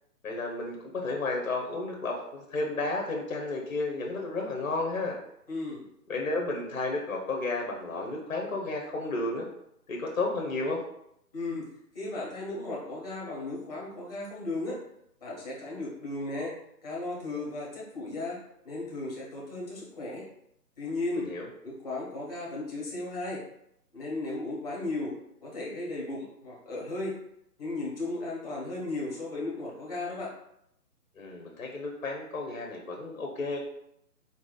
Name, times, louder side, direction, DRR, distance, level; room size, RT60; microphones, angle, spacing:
voice 1, 0.2-5.2 6.1-9.5 9.9-10.8 21.2-21.5 31.2-33.6, left 2 dB, 55° left, 1 dB, 0.9 m, -32 dB
voice 2, 5.5-5.8 11.3-11.7 11.9-14.8 15.2-16.5 16.8-18.4 18.6-20.2 20.8-21.3 21.6-23.4 23.9-25.1 25.4-27.2 27.6-30.3, left 2 dB, 25° left, -4 dB, 1.0 m, -35 dB
4.4 x 2.7 x 3.9 m, 0.76 s
hypercardioid pair, 170°, 49 cm